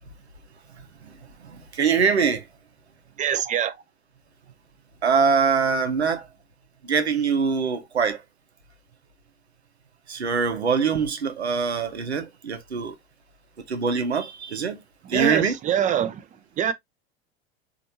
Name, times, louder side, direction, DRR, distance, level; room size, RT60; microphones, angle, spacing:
voice 1, 1.8-2.4 5.0-6.2 6.8-8.2 10.1-12.9 13.7-14.8 15.1-15.6, right 5 dB, 80° right, 0.9 m, -23 dB
voice 2, 3.2-3.7 15.1-16.2 16.6-16.7, right 9 dB, 25° right, 0.5 m, -24 dB
4.3 x 2.8 x 2.6 m
figure-of-eight pair, 75°, 32 cm